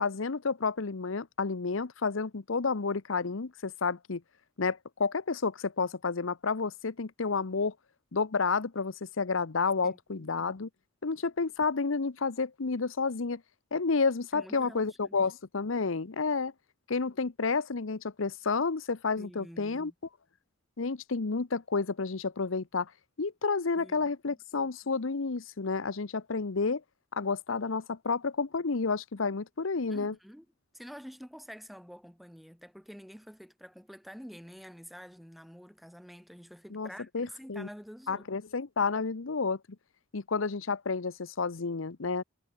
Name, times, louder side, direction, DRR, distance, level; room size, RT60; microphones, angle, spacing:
voice 1, 0.0-4.2 4.6-7.7 8.1-10.7 11.0-13.4 13.7-16.5 16.9-19.9 20.8-22.9 23.2-26.8 27.1-30.1 36.7-36.9 37.1-37.7 38.1-39.6 40.1-42.2, left 4 dB, 85° left, 0.9 m, -30 dB
voice 2, 9.8-10.3 14.3-15.2 15.9-16.0 19.2-19.9 23.8-24.4 29.9-30.5 30.7-38.3, equal, ahead, 7.2 m, -48 dB
head